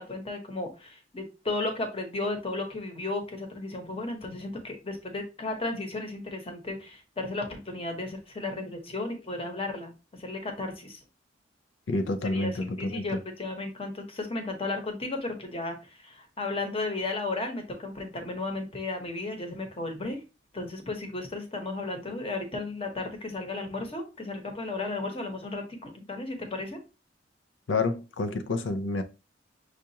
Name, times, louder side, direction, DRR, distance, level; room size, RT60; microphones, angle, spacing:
voice 1, 0.0-11.0 12.3-12.5 12.8-20.2 20.5-26.8, left 2 dB, 30° left, 0.9 m, -34 dB
voice 2, 11.9-13.2 27.7-29.0, left 3 dB, 90° left, 0.5 m, -29 dB
6.3 x 2.4 x 2.8 m
head